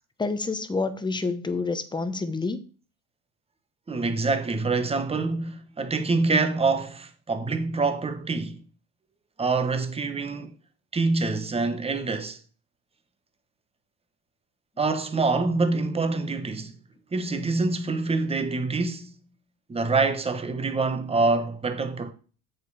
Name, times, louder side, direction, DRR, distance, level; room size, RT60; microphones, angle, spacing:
voice 1, 0.2-2.6, left 3 dB, 10° left, 0.8 m, -28 dB
voice 2, 3.9-8.6 9.4-10.5 10.9-12.4 14.8-16.7 17.1-19.1 19.7-22.1, right 3 dB, 15° right, 1.0 m, -26 dB
7.8 x 5.0 x 4.8 m
cardioid pair, 115°, 37 cm